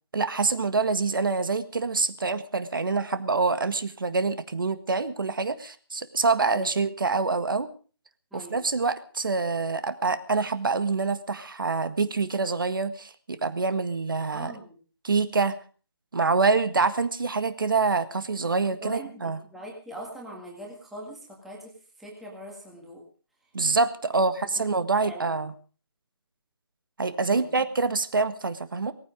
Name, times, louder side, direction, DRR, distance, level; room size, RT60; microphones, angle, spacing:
voice 1, 0.1-7.7 8.3-14.5 15.0-15.6 16.1-19.4 23.5-25.5 27.0-28.9, right 4 dB, 55° right, 12 dB, 1.7 m, -26 dB
voice 2, 8.3-8.6 14.3-14.7 18.8-21.7 22.0-23.0 24.1-24.2 25.0-25.3 27.3-27.4, right 1 dB, ahead, -2 dB, 1.9 m, -41 dB
19.0 x 14.5 x 5.2 m, 0.40 s
figure-of-eight pair, 170°, 14 cm